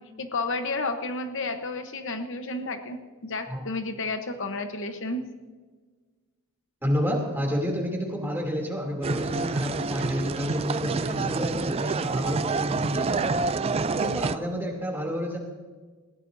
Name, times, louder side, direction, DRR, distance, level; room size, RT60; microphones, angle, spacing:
voice 1, 0.2-5.2, left 3 dB, 55° left, 6 dB, 1.0 m, -31 dB
voice 2, 6.8-13.2 13.9-15.4, equal, 10° right, -1 dB, 2.8 m, -29 dB
sound 1, 9.0-14.4, right 4 dB, 25° right, 0.3 m, -28 dB
20.0 x 17.0 x 2.7 m, 1.4 s
head